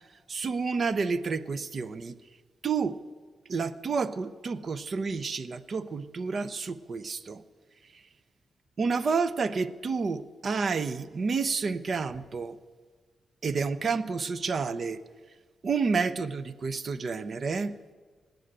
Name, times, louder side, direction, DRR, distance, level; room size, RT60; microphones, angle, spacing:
voice 1, 0.3-2.2 2.6-3.0 3.5-7.4 7.9-8.0 8.8-12.6 13.4-15.0 15.6-17.7, right 4 dB, 55° right, 14 dB, 0.8 m, -30 dB
19.5 x 8.0 x 8.9 m, 1.5 s
supercardioid pair, 45°, 0 cm